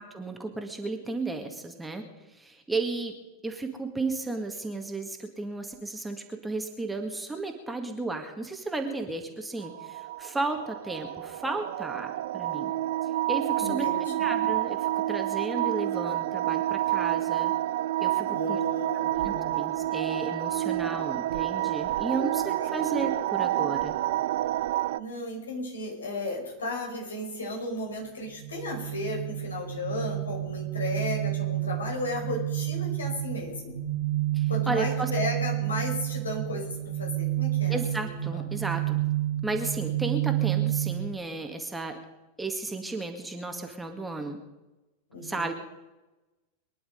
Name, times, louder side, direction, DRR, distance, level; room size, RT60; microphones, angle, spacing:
voice 1, 0.0-2.1 2.3-3.2 3.4-12.7 13.3-17.5 18.0-18.6 19.2-24.0 34.3-35.1 37.7-39.0 39.4-42.0 42.4-44.4 45.2-45.5, right 3 dB, 10° right, 4 dB, 2.0 m, -34 dB
sound 1, 9.6-25.0, right 14 dB, 55° right, 0.5 m, -29 dB
voice 2, 13.6-14.0 18.2-19.6 22.4-23.0 24.9-33.8 34.5-37.8 45.1-45.5, left 2 dB, 70° left, 0 dB, 5.3 m, -34 dB
sound 2, 28.3-41.1, right 15 dB, 70° right, 2.0 m, -30 dB
23.5 x 10.5 x 5.3 m, 1.1 s
figure-of-eight pair, 90°, 0 cm